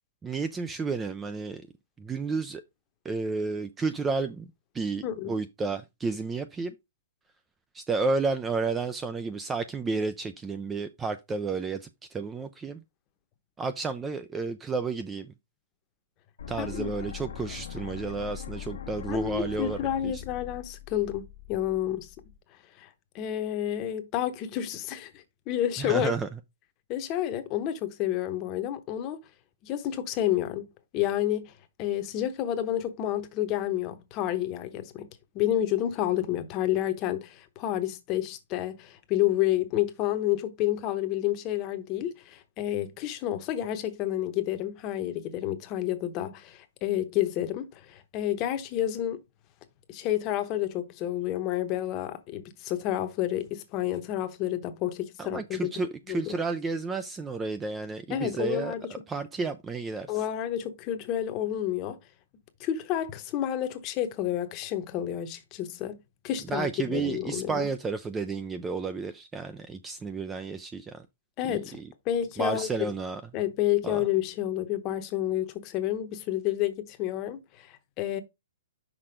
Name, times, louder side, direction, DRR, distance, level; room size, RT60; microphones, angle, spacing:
voice 1, 0.2-1.6 2.0-2.6 3.0-4.5 4.7-6.7 7.7-12.8 13.6-15.3 16.5-19.8 20.0-20.2 25.8-26.3 55.2-58.7 59.1-60.2 66.5-71.1 71.5-71.9 72.4-73.2 73.8-74.1, right 4 dB, 10° right, 0.3 m, -31 dB
sound 1, 16.4-22.4, left 9 dB, 80° left, 1.0 m, -41 dB
voice 2, 16.6-16.9 19.1-22.1 22.8-22.9 23.1-26.1 26.9-29.2 29.6-30.7 30.9-31.5 31.8-35.1 35.3-49.2 49.9-55.6 56.1-56.4 58.1-58.8 60.1-62.0 62.6-66.0 66.2-67.7 71.4-71.8 72.1-72.9 73.3-78.2, left 12 dB, 25° left, 0.9 m, -30 dB
6.0 x 4.3 x 5.0 m
hypercardioid pair, 165°, 0 cm